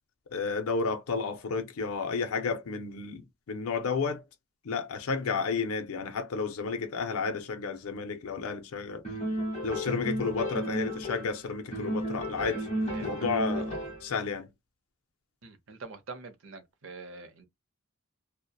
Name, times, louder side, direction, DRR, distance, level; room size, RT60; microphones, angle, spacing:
voice 1, 0.3-3.2 3.5-4.2 4.6-9.0 9.6-12.7 13.0-14.5, left 5 dB, 80° left, 0.5 m, -32 dB
sound 1, 9.0-11.4 11.7-14.1, equal, 30° left, 1.2 m, -33 dB
voice 2, 15.4-17.4, right 3 dB, 60° right, 0.6 m, -45 dB
2.7 x 2.1 x 2.3 m
head